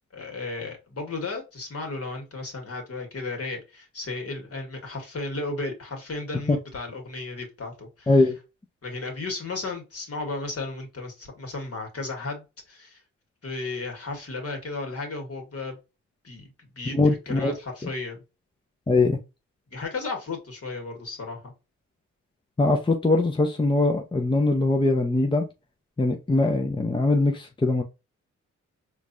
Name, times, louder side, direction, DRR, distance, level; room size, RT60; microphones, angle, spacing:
voice 1, 0.1-8.1 8.8-13.0 13.4-15.8 16.2-18.2 19.7-21.5, left 3 dB, 45° left, 1.8 m, -34 dB
voice 2, 8.1-8.4 16.9-17.5 18.9-19.2 22.6-25.5 26.0-27.8, left 2 dB, 15° left, 0.7 m, -22 dB
4.4 x 2.5 x 2.6 m
supercardioid pair, 55°, 33 cm